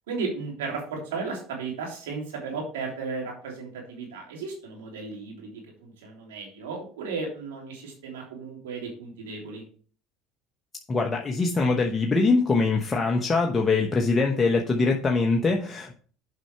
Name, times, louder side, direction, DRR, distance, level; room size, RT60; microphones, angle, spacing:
voice 1, 0.1-9.6, right 4 dB, 90° right, 0 dB, 3.2 m, -35 dB
voice 2, 10.9-15.9, left 3 dB, 25° left, 1 dB, 1.1 m, -23 dB
7.8 x 5.7 x 4.6 m, 0.43 s
supercardioid pair, 85°, 0 cm